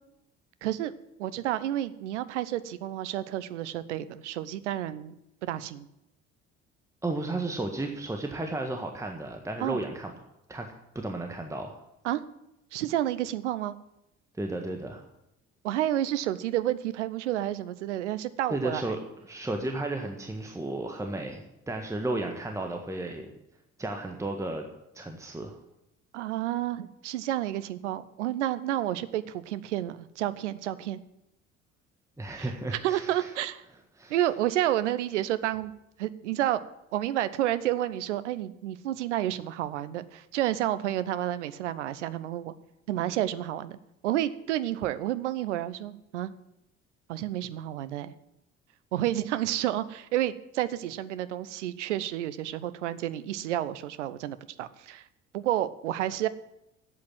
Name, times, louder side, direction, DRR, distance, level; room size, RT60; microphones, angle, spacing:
voice 1, 0.6-0.9 1.2-5.2 5.4-5.9 9.6-9.8 12.0-12.2 12.7-13.8 15.6-19.0 26.1-31.0 32.4-33.6 34.1-35.7 36.0-36.6 36.9-42.5 42.9-46.3 47.1-48.1 48.9-55.1 55.3-56.3, right 13 dB, 70° right, 14 dB, 0.8 m, -30 dB
voice 2, 7.0-10.1 10.5-11.8 14.4-15.0 18.5-19.0 19.3-23.3 23.8-24.7 24.9-25.6 32.2-33.3 33.9-34.1, right 2 dB, 10° right, 3 dB, 1.5 m, -33 dB
12.0 x 8.6 x 7.7 m, 0.84 s
figure-of-eight pair, 55°, 37 cm